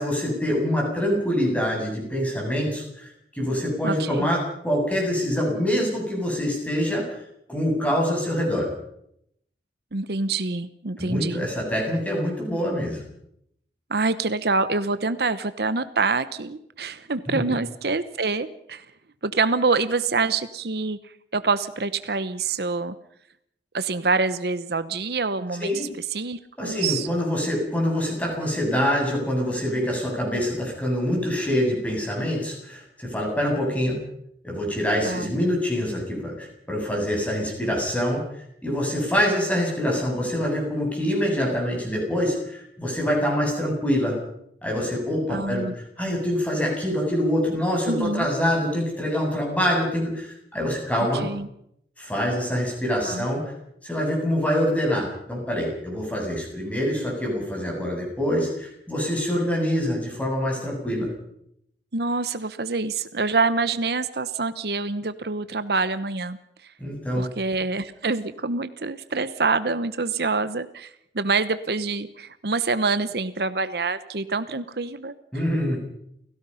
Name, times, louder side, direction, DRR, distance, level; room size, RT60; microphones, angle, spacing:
voice 1, 0.0-7.1 7.5-8.7 11.0-13.1 17.3-17.5 25.6-25.9 26.6-34.0 34.4-38.2 38.6-44.2 44.6-51.3 52.0-53.5 53.8-61.1 66.8-67.3 75.3-75.8, equal, 10° left, -1 dB, 7.7 m, -25 dB
voice 2, 3.8-4.3 9.9-11.5 13.9-18.9 19.2-22.9 23.7-27.1 35.0-35.3 45.3-46.2 47.9-48.3 51.1-51.5 53.0-53.3 61.9-66.7 67.1-75.1, right 4 dB, 65° right, 13 dB, 0.9 m, -26 dB
30.0 x 16.5 x 5.7 m, 0.74 s
head